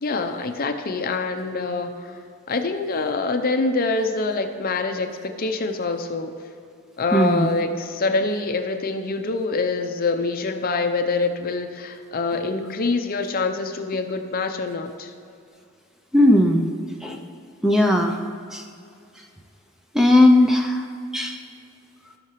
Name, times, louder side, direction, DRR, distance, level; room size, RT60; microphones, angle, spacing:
voice 1, 0.0-6.3 7.0-15.1, left 3 dB, 40° left, 6 dB, 0.6 m, -25 dB
voice 2, 7.1-7.5 16.1-16.7 17.0-17.2 17.6-18.2 18.5-18.6 19.9-20.8 21.1-21.4, left 1 dB, ahead, 3 dB, 0.4 m, -17 dB
15.5 x 5.8 x 3.1 m, 2.4 s
head